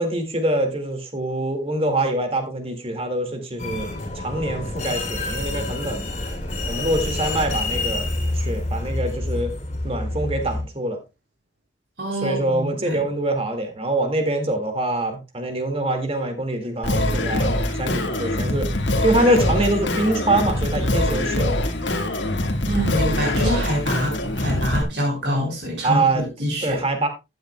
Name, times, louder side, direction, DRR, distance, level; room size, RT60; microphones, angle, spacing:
voice 1, 0.0-6.1 6.7-8.1 8.3-9.5 9.8-11.0 12.2-18.7 19.0-21.5 25.8-26.2 26.6-27.1, right 1 dB, 30° right, 2.0 m, -24 dB
sound 1, 3.6-10.6, left 2 dB, 35° left, 3.0 m, -27 dB
voice 2, 12.0-13.0 22.6-26.8, equal, 60° right, 3.8 m, -25 dB
Singing, 16.8-24.8, left 1 dB, 75° left, 1.7 m, -23 dB
14.0 x 9.5 x 2.2 m
head